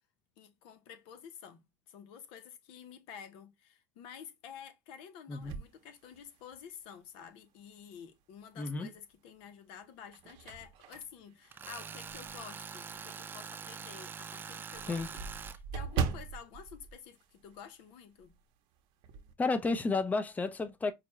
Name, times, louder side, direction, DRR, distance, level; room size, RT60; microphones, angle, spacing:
voice 1, 0.4-15.2 15.5-18.4, left 7 dB, 70° left, 0.9 m, -50 dB
voice 2, 5.3-5.6 8.6-8.9 14.9-15.1 19.4-20.9, left 3 dB, 15° left, 0.7 m, -32 dB
sound 1, 5.4-6.7 7.3-7.4 8.8-9.4 9.8-12.5 12.9-13.0 13.4-13.5 13.8-13.9 14.1-17.9 18.2-18.4 18.7-19.3, right 6 dB, 65° right, 0.9 m, -40 dB
Tools, 11.5-15.6, right 6 dB, 20° right, 0.4 m, -44 dB
5.0 x 2.3 x 3.0 m
supercardioid pair, 125°, 9 cm